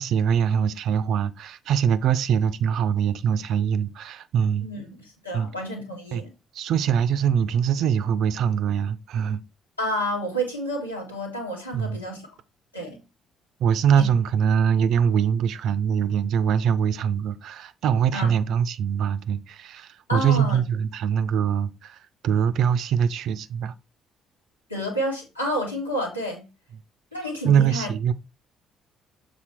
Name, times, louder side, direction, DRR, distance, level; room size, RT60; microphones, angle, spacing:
voice 1, 0.0-4.7 5.3-5.5 6.1-6.2 6.5-9.4 11.7-12.0 13.6-23.7 27.4-28.1, right 8 dB, 55° right, 0.5 m, -23 dB
voice 2, 4.6-6.3 9.8-12.2 12.7-13.0 14.0-14.1 18.1-18.3 20.1-20.6 24.7-26.5 27.1-27.9, equal, 90° left, 1.8 m, -30 dB
7.1 x 3.9 x 4.4 m
figure-of-eight pair, 45°, 0 cm